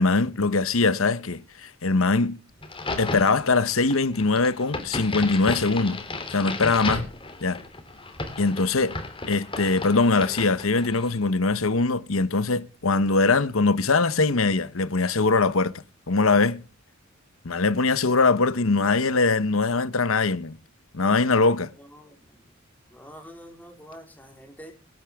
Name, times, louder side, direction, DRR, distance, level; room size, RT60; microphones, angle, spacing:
voice 1, 0.0-2.4 3.0-6.0 6.3-7.1 7.4-7.6 8.4-9.0 9.3-15.7 16.1-16.6 17.4-20.6 20.9-21.7, left 3 dB, 80° left, 1.1 m, -22 dB
Crack, 2.6-11.2, left 2 dB, 25° left, 3.3 m, -34 dB
voice 2, 21.8-22.4 22.9-24.7, equal, 10° left, 4.0 m, -46 dB
22.5 x 11.0 x 3.6 m
head